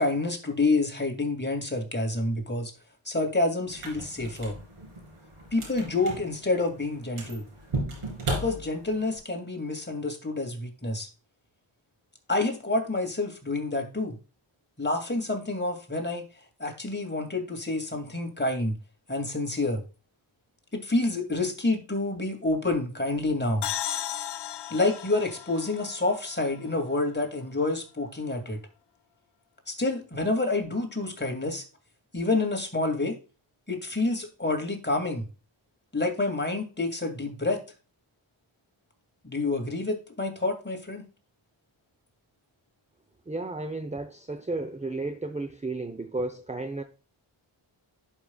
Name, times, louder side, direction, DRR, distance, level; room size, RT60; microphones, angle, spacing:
voice 1, 0.0-2.7 3.1-4.6 5.5-7.5 8.3-11.1 12.3-14.2 14.8-16.2 16.6-18.8 19.1-19.8 20.7-23.7 24.7-28.6 29.7-31.6 32.1-33.2 33.7-35.3 35.9-37.6 39.2-41.0, left 2 dB, 20° left, 2.5 m, -28 dB
sound 1, 3.7-9.2, right 2 dB, 85° right, 3.8 m, -36 dB
sound 2, 23.6-27.2, left 11 dB, 55° left, 0.5 m, -36 dB
voice 2, 43.3-46.8, right 2 dB, 15° right, 0.7 m, -33 dB
11.5 x 5.6 x 2.3 m
cardioid pair, 60°, 50 cm